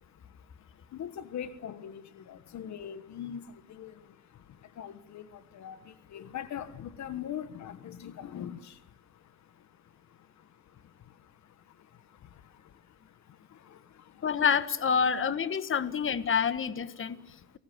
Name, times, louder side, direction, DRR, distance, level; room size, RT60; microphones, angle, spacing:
voice 1, 0.0-14.3 15.7-15.8 17.0-17.6, left 9 dB, 65° left, 13 dB, 1.5 m, -44 dB
voice 2, 14.2-17.2, left 6 dB, 45° left, 13 dB, 1.5 m, -27 dB
28.0 x 18.5 x 8.0 m, 0.80 s
cardioid pair, 90°, 30 cm